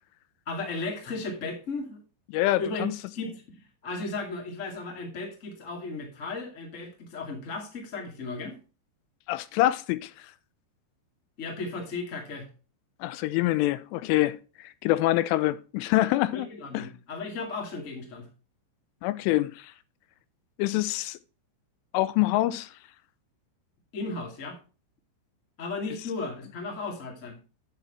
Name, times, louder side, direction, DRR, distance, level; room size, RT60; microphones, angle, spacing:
voice 1, 0.4-2.0 2.6-2.9 3.1-8.6 11.4-12.5 16.3-18.3 23.9-24.6 25.6-27.4, left 3 dB, 45° left, 0.9 m, -35 dB
voice 2, 2.3-2.9 9.3-10.1 13.0-14.4 14.6-16.5 16.7-16.9 19.0-19.7 20.6-21.2 21.9-22.7, left 16 dB, 85° left, 3.2 m, -25 dB
9.0 x 6.0 x 4.2 m
omnidirectional pair, 5.6 m